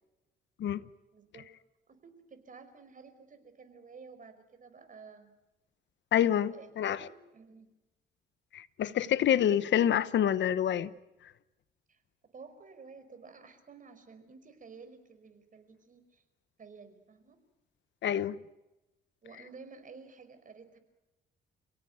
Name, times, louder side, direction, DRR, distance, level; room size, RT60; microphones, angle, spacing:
voice 1, 1.1-1.5 1.9-5.3 6.5-7.7 11.9-12.0 12.3-16.2 16.6-17.4 19.2-20.8, right 5 dB, 40° right, 5.1 m, -52 dB
voice 2, 6.1-7.1 8.5-10.9 18.0-18.4, left 10 dB, 65° left, 1.0 m, -27 dB
29.0 x 17.5 x 9.5 m
cardioid pair, 90°, 20 cm